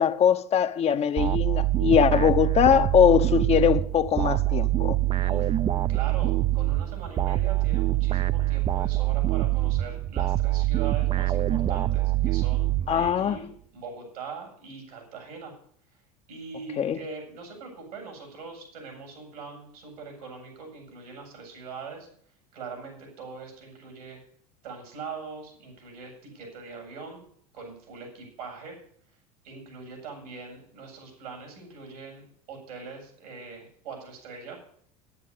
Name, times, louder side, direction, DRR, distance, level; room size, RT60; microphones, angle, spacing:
voice 1, 0.0-5.0 12.9-13.4 16.8-17.0, left 9 dB, 35° left, 0.7 m, -21 dB
sound 1, 1.2-13.4, right 15 dB, 30° right, 0.5 m, -25 dB
voice 2, 5.2-5.5 5.9-15.5 16.3-22.1 22.5-24.2 24.6-27.2 27.5-28.8 29.4-34.6, right 5 dB, 85° right, 7.2 m, -41 dB
9.8 x 9.7 x 9.5 m
hypercardioid pair, 95°, 19 cm